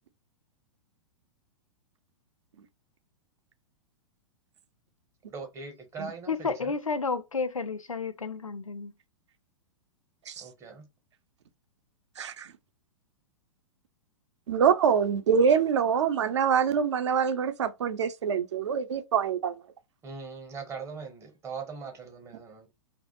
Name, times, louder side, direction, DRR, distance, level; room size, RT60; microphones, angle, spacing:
voice 1, 5.3-6.7 10.4-10.9 20.0-22.7, right 5 dB, 15° right, 0.7 m, -41 dB
voice 2, 6.3-8.9, left 4 dB, 85° left, 0.4 m, -31 dB
voice 3, 12.2-12.5 14.5-19.6, right 7 dB, 60° right, 0.5 m, -25 dB
2.2 x 2.0 x 2.8 m
figure-of-eight pair, 105°, 17 cm